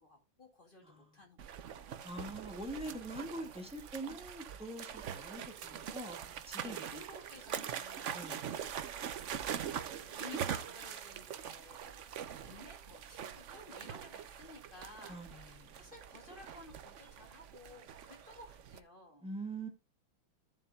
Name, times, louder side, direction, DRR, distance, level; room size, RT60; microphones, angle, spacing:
voice 1, 0.0-1.5 6.6-8.5 8.8-9.5 10.0-19.3, left 2 dB, 25° left, 2.3 m, -55 dB
voice 2, 0.8-1.2 2.0-6.8 8.1-8.5 15.1-15.8 19.2-19.7, right 1 dB, 5° right, 1.7 m, -44 dB
sound 1, 1.4-18.8, right 8 dB, 80° right, 0.6 m, -43 dB
14.5 x 7.3 x 2.4 m
omnidirectional pair, 2.2 m